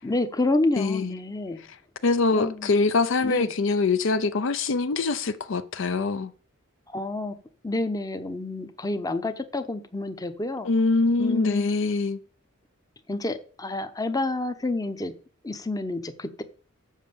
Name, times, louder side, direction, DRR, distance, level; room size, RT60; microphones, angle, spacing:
voice 1, 0.0-1.6 2.3-2.7 3.2-3.5 6.9-7.4 7.6-10.7 11.2-11.7 13.1-15.1 15.4-16.4, left 2 dB, 15° left, 0.7 m, -28 dB
voice 2, 0.8-1.2 1.7-1.8 2.0-6.3 10.6-12.2, left 3 dB, 60° left, 0.5 m, -24 dB
7.4 x 6.1 x 6.8 m
head